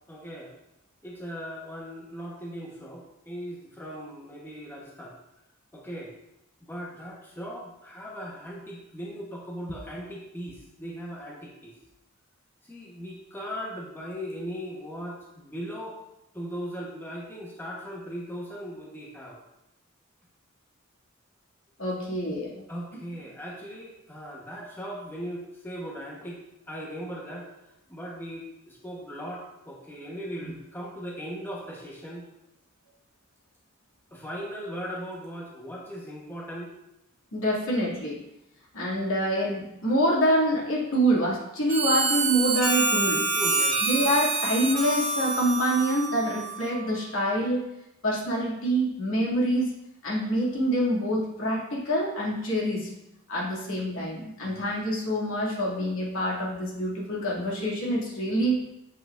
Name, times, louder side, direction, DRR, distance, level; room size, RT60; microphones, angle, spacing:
voice 1, 0.1-0.5 1.0-5.2 5.7-6.1 6.6-11.7 12.6-16.0 16.3-19.4 22.7-26.4 26.7-27.5 27.9-32.2 34.1-36.7 43.3-43.9, equal, 10° left, -4 dB, 1.1 m, -38 dB
voice 2, 21.8-22.6 37.3-38.1 38.7-43.2 43.8-47.6 48.0-49.7 50.0-52.9 53.3-58.6, equal, 85° left, -4 dB, 2.4 m, -26 dB
Harmonica, 41.7-46.9, right 3 dB, 40° right, 1.7 m, -27 dB
8.2 x 7.6 x 2.5 m, 0.85 s
head